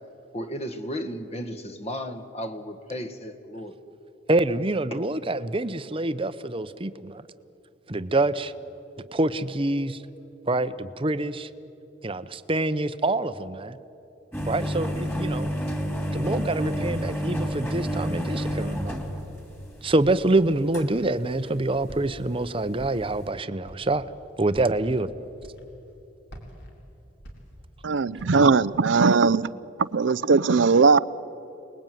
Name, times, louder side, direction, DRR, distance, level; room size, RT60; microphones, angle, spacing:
voice 1, 0.3-3.7 4.9-5.0, equal, 35° left, 8 dB, 1.6 m, -34 dB
voice 2, 4.3-7.2 7.9-8.5 9.1-10.0 10.5-11.5 12.0-13.8 14.5-15.5 16.1-19.0 19.8-24.1 24.4-25.1, right 2 dB, 30° right, 13 dB, 0.8 m, -26 dB
sound 1, 14.3-20.1 20.7-22.3 22.5-22.8 23.0-23.2, equal, 10° left, 2.7 m, -29 dB
Walk footsteps, 20.0-20.5 21.0-21.5 21.9-22.4 22.8-23.3 23.6-24.0 24.5-24.9 25.4-25.9 26.3-27.8 28.2-28.5, equal, 65° left, 4.6 m, -45 dB
voice 3, 27.8-29.5 29.8-31.0, right 4 dB, 80° right, 18 dB, 0.6 m, -19 dB
28.5 x 20.5 x 9.2 m, 2.9 s
head